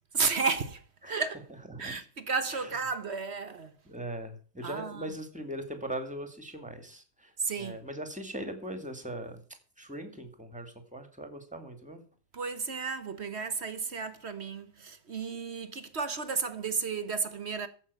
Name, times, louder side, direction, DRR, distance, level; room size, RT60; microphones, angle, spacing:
voice 1, 0.1-1.4 1.8-3.7 4.6-5.1 7.4-7.8 12.3-17.7, right 5 dB, 45° right, 1.1 m, -33 dB
voice 2, 3.8-7.3 7.6-9.4 9.8-12.0, right 1 dB, 5° right, 2.2 m, -40 dB
15.0 x 6.1 x 6.9 m
omnidirectional pair, 1.9 m